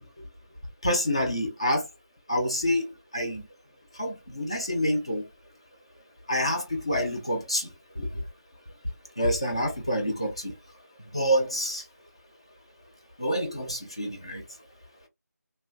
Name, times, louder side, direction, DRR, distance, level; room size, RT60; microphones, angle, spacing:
voice 1, 0.8-1.8 2.3-2.9 3.1-3.4 4.0-5.2 6.3-7.7 8.0-8.1 9.2-10.5 11.1-11.8 13.2-14.4, equal, 20° left, 0.4 m, -27 dB
3.1 x 2.4 x 2.4 m
figure-of-eight pair, 175°, 9 cm